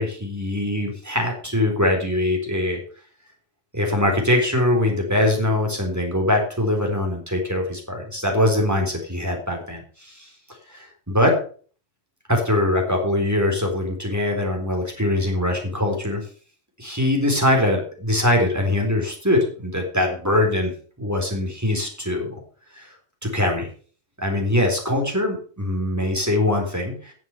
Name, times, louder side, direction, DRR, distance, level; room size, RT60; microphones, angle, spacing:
voice 1, 0.0-2.8 3.7-10.3 10.7-11.4 12.3-16.2 16.8-20.7 21.0-22.4 22.7-22.9 23.2-23.7 24.2-27.1, left 1 dB, 15° right, 1 dB, 4.0 m, -22 dB
11.0 x 7.4 x 6.8 m, 0.42 s
omnidirectional pair, 1.1 m